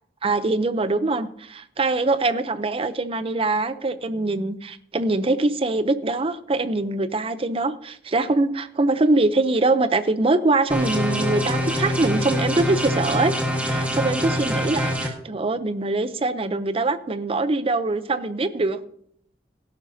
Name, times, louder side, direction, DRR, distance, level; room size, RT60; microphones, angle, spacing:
voice 1, 0.2-13.3 13.6-18.8, right 2 dB, 35° right, 13 dB, 0.6 m, -23 dB
sound 1, 10.7-15.1, equal, 10° right, 1.5 m, -24 dB
17.5 x 11.5 x 2.8 m, 0.68 s
head